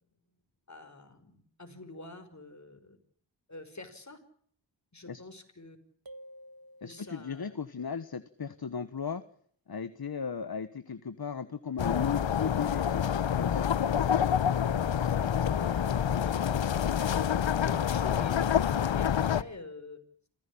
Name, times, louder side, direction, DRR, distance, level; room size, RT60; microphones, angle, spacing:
voice 1, 0.7-3.0 3.5-4.2 4.9-5.8 6.8-7.5 14.6-20.0, left 2 dB, 40° left, 8 dB, 5.5 m, -46 dB
sound 1, 6.1-7.5, right 1 dB, 50° right, 1.7 m, -51 dB
voice 2, 6.8-9.2 9.7-13.8, left 6 dB, 55° left, 13 dB, 1.4 m, -36 dB
sound 2, 11.8-19.4, left 8 dB, 80° left, 0.9 m, -27 dB
28.0 x 16.0 x 8.6 m, 0.62 s
cardioid pair, 55°, 45 cm